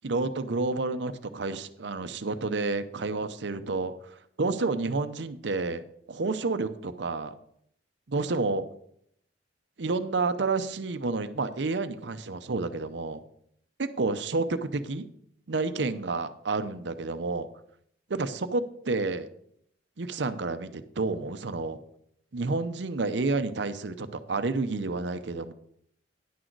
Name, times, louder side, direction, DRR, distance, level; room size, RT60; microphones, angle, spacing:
voice 1, 0.0-7.4 8.1-8.6 9.8-13.2 13.8-15.1 15.5-17.5 18.1-19.3 20.0-21.8 22.3-25.5, right 3 dB, 70° right, 11 dB, 0.7 m, -30 dB
10.5 x 6.4 x 4.6 m, 0.70 s
head